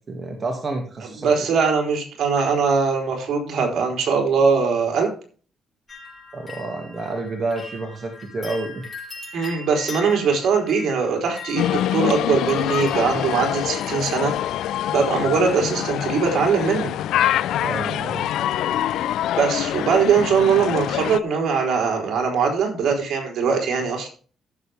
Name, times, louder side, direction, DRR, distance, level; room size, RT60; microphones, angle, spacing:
voice 1, 0.1-1.3 6.3-8.8 17.6-18.3, right 3 dB, 40° right, 2 dB, 2.3 m, -29 dB
voice 2, 1.2-5.1 9.3-14.3 14.9-16.9 19.4-24.1, right 5 dB, 65° right, 2 dB, 4.1 m, -21 dB
sound 1, 5.9-14.8 15.7-16.3 16.5-17.1 17.4-17.5, left 3 dB, 30° left, 4.8 m, -41 dB
sound 2, 11.6-21.2, left 12 dB, 80° left, 0.5 m, -25 dB
15.0 x 7.0 x 3.6 m, 0.39 s
cardioid pair, 90°, 0 cm